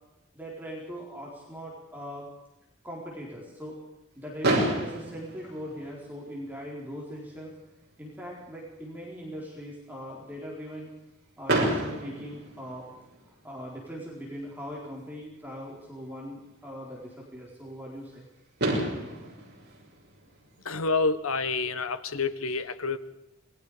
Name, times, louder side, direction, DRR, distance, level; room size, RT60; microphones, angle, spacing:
voice 1, 0.3-2.3 2.8-3.8 4.1-7.6 8.0-10.9 11.4-12.9 13.3-18.3, equal, 10° right, -4 dB, 4.4 m, -40 dB
Fireworks, 4.4-6.5 7.3-7.4 7.6-7.8 8.1-8.2 11.5-13.3 15.0-15.1 18.1-18.2 18.6-20.9, right 1 dB, 55° right, 6.8 m, -30 dB
voice 2, 20.6-23.0, left 4 dB, 85° left, 12 dB, 1.3 m, -28 dB
27.0 x 21.5 x 5.1 m, 0.88 s
head